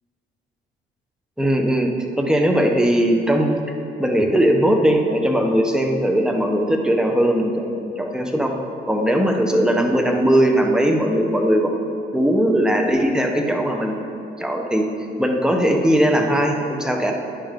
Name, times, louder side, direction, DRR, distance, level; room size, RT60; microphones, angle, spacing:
voice 1, 1.4-1.9 2.2-3.5 4.0-8.6 8.9-11.8 12.1-14.0 14.4-14.9 15.2-17.1, equal, 5° right, 2 dB, 0.8 m, -19 dB
10.0 x 5.4 x 3.7 m, 2.7 s
cardioid pair, 90°, 20 cm